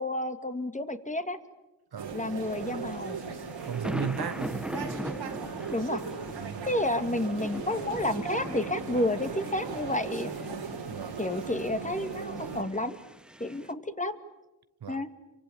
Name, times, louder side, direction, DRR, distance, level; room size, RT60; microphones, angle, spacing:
voice 1, 0.0-1.4 2.1-3.2 5.7-6.0 6.6-10.3 11.2-13.0 13.4-14.2 14.9-15.1, left 1 dB, 15° left, 2.2 m, -30 dB
sound 1, 2.0-12.6, right 5 dB, 80° right, 3.6 m, -38 dB
sound 2, 2.4-13.7, equal, ahead, 1.2 m, -41 dB
voice 2, 3.6-4.7 6.4-6.7 10.9-11.2 14.8-15.0, right 8 dB, 55° right, 1.0 m, -35 dB
28.0 x 24.5 x 8.8 m
cardioid pair, 60°, 44 cm